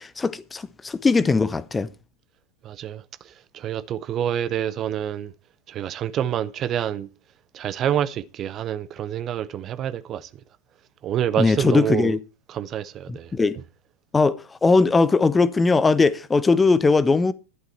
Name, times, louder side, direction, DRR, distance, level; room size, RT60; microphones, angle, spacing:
voice 1, 0.0-1.9 11.4-12.2 13.1-13.6 14.1-17.3, left 4 dB, 10° left, 0.7 m, -20 dB
voice 2, 2.6-5.3 5.7-7.1 7.5-10.3 11.0-12.2 12.5-13.3, right 10 dB, 30° right, 0.5 m, -27 dB
11.5 x 11.0 x 4.4 m
figure-of-eight pair, 90°, 0 cm